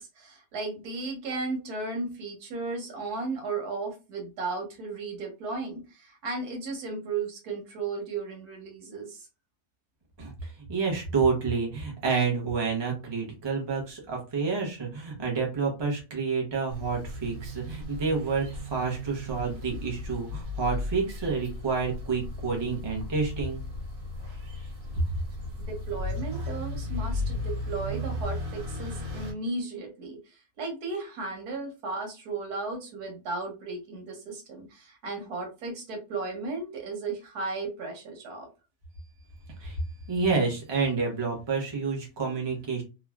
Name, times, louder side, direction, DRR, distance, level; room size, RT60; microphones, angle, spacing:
voice 1, 0.0-9.3 25.7-38.5, right 3 dB, 90° right, 2 dB, 1.5 m, -35 dB
voice 2, 10.2-23.6 39.6-39.8 40.1-42.8, right 4 dB, 25° right, 0 dB, 0.6 m, -29 dB
sound 1, 16.7-29.3, left 1 dB, 70° right, 1.5 m, -35 dB
3.1 x 2.3 x 2.3 m, 0.30 s
omnidirectional pair, 1.6 m